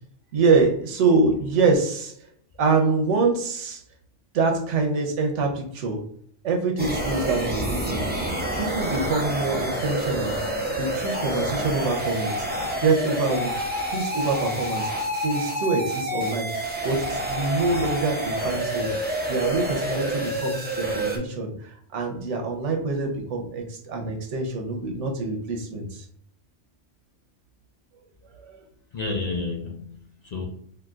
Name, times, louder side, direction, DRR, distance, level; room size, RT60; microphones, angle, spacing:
voice 1, 0.3-2.1 2.6-3.8 4.3-6.1 6.4-8.1 8.5-10.4 10.8-12.5 12.8-14.9 15.2-18.9 19.3-26.1 28.4-28.6, right 3 dB, 80° right, 3 dB, 1.1 m, -25 dB
sound 1, 6.8-21.2, right 1 dB, 15° right, 0.4 m, -28 dB
voice 2, 28.9-30.4, left 3 dB, 50° left, -1 dB, 0.5 m, -31 dB
3.9 x 2.7 x 2.3 m, 0.67 s
omnidirectional pair, 1.2 m